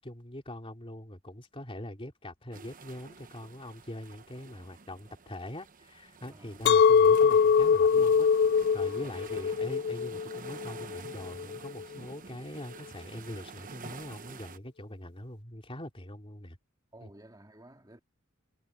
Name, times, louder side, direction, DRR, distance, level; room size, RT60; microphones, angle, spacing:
voice 1, 0.0-8.3 8.7-16.6 17.0-17.1, left 1 dB, 25° left, 3.5 m, -43 dB
sound 1, 2.5-14.6, right 5 dB, 40° right, 1.0 m, -49 dB
voice 2, 6.3-7.0 9.0-9.5 16.9-18.0, right 1 dB, 20° right, 2.8 m, -54 dB
Chink clink, 6.7-11.8, left 6 dB, 50° left, 0.3 m, -23 dB
head